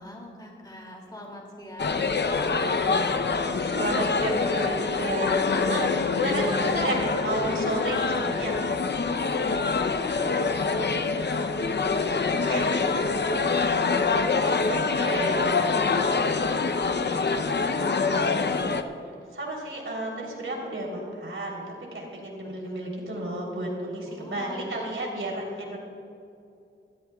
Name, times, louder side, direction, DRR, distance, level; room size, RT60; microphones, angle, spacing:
voice 1, 0.0-3.1 3.4-3.5 6.6-7.0 8.0-8.3 9.4-11.8 12.2-15.5 15.8-18.3 22.4-22.9 24.1-24.8, left 1 dB, 20° left, -1 dB, 2.6 m, -43 dB
sound 1, 1.8-18.8, left 4 dB, 55° left, 0.7 m, -25 dB
voice 2, 3.7-8.6 12.3-13.0 14.4-15.4 18.4-18.7 19.3-21.6 21.9-25.8, right 1 dB, 70° right, -2 dB, 3.6 m, -32 dB
Bowed string instrument, 5.0-10.0, left 4 dB, 70° left, 1.5 m, -40 dB
21.5 x 14.5 x 2.4 m, 2.5 s
cardioid pair, 55°, 21 cm